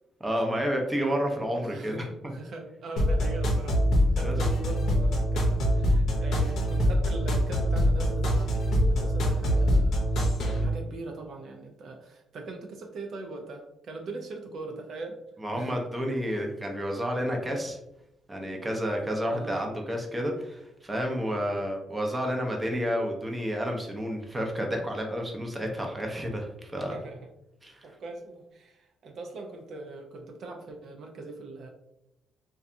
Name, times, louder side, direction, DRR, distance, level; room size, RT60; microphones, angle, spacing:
voice 1, 0.2-2.3 4.2-4.4 15.4-17.8 18.3-27.0 27.6-27.9, equal, 15° right, 1 dB, 0.6 m, -30 dB
voice 2, 1.6-3.8 4.1-15.2 15.6-15.7 19.3-19.6 26.2-26.5 26.8-27.2 27.8-31.7, right 3 dB, 65° right, 2 dB, 0.4 m, -41 dB
sound 1, 3.0-10.6, equal, 75° left, 0.6 m, -24 dB
2.6 x 2.2 x 2.4 m, 0.84 s
cardioid pair, 90°, 0 cm